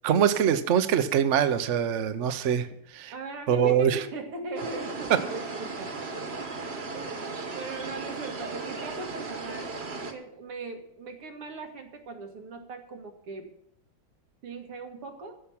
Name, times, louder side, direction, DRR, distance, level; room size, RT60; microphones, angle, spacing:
voice 1, 0.0-2.7 2.9-3.1 3.5-4.0 5.1-5.2, right 8 dB, 60° right, 10 dB, 0.7 m, -23 dB
voice 2, 3.1-6.5 6.9-9.8 10.1-13.5 14.4-15.4, right 3 dB, 90° right, 3 dB, 2.8 m, -39 dB
sound 1, 4.6-10.1, right 3 dB, 35° right, 1.3 m, -36 dB
14.5 x 5.9 x 8.6 m, 0.72 s
omnidirectional pair, 2.4 m